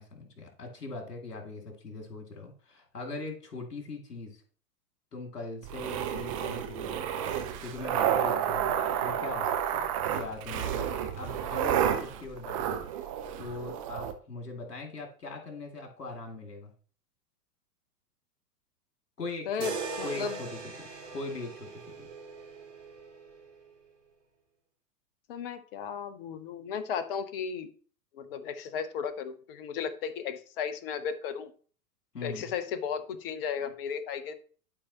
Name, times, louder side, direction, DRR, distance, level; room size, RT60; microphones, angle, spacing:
voice 1, 0.0-4.4 5.1-10.9 11.2-16.7 19.2-19.7 20.0-22.1 32.1-32.5, left 3 dB, 70° left, 2 dB, 2.5 m, -41 dB
sound 1, 5.6-14.1, right 9 dB, 25° right, 0.5 m, -30 dB
voice 2, 19.5-20.4 25.3-27.7 28.1-31.5 32.2-34.3, left 7 dB, 35° left, 11 dB, 0.9 m, -35 dB
sound 2, 19.6-23.7, right 5 dB, 45° right, 2.3 m, -40 dB
12.0 x 4.7 x 2.9 m, 0.43 s
figure-of-eight pair, 105°, 47 cm